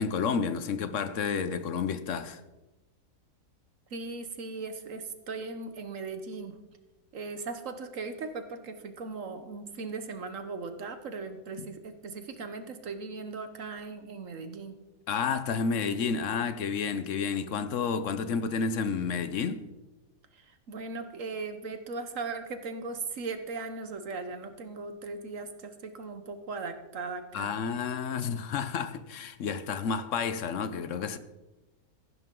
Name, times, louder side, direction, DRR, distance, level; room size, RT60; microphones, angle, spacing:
voice 1, 0.0-2.4 11.6-11.7 15.1-19.6 27.3-31.2, left 5 dB, 60° left, 1.0 m, -30 dB
voice 2, 3.9-6.6 7.1-14.8 20.3-27.6, right 4 dB, 55° right, 1.3 m, -38 dB
15.0 x 11.5 x 3.8 m
omnidirectional pair, 1.7 m